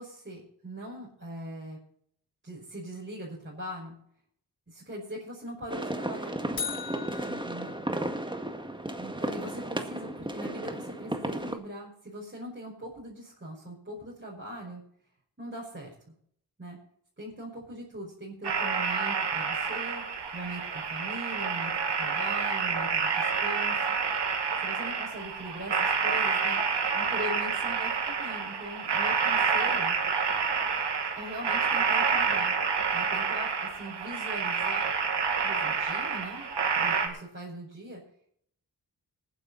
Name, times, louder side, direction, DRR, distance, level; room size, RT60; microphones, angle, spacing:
voice 1, 0.0-1.8 2.4-4.0 4.7-6.4 7.3-7.8 9.0-14.8 15.4-15.9 16.6-16.8 17.2-23.9 24.6-26.6 26.9-30.0 31.1-32.5 32.9-34.9 35.4-36.5 36.7-38.0, right 1 dB, 30° right, -4 dB, 5.5 m, -41 dB
sound 1, 5.7-11.5, right 1 dB, 10° right, 1.9 m, -34 dB
sound 2, 6.6-8.7, left 5 dB, 60° left, 2.0 m, -39 dB
sound 3, 18.4-37.1, right 5 dB, 80° right, 2.1 m, -28 dB
18.5 x 10.0 x 4.2 m, 0.64 s
cardioid pair, 45°, 41 cm